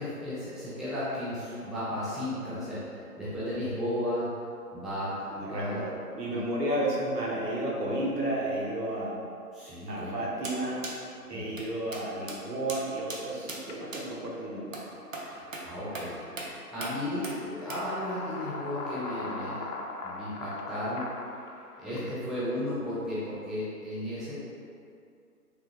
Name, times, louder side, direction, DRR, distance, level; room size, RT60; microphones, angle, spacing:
voice 1, 0.0-4.3 4.7-5.8 6.2-6.4 9.5-10.2 11.2-11.6 15.2-16.2 16.7-19.7 20.0-21.1 21.8-24.3, left 1 dB, ahead, -11 dB, 0.4 m, -34 dB
voice 2, 5.3-9.2 9.9-10.8 11.3-14.7 21.9-22.2, right 1 dB, 85° right, -5 dB, 1.1 m, -32 dB
sound 1, 10.4-10.6 10.8-11.0 11.6-11.7 11.9-12.0 12.3-12.4 12.7-12.8 13.1-13.2 13.5-13.6 13.9-14.0 14.7-14.9 15.1-15.3 15.5-15.7 16.0-16.1 16.4-16.5 16.8-16.9 17.2-17.4 17.7-17.8, right 2 dB, 55° right, 0.5 m, -38 dB
sound 2, 13.7-13.8 14.2-14.4 16.5-16.6 17.1-22.1, left 3 dB, 75° left, 0.5 m, -40 dB
3.4 x 2.3 x 2.9 m, 2.4 s
figure-of-eight pair, 165°, 47 cm